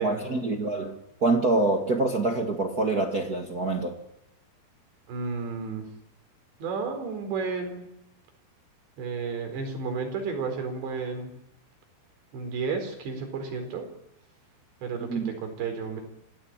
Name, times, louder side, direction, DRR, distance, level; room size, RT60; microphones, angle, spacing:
voice 1, 0.0-4.0 15.1-15.3, right 2 dB, 50° right, 1.1 m, -26 dB
voice 2, 5.1-5.8 6.6-7.9 9.0-11.3 12.3-13.8 14.8-16.0, right 5 dB, 85° right, 6.5 m, -32 dB
26.5 x 17.5 x 8.9 m
omnidirectional pair, 4.9 m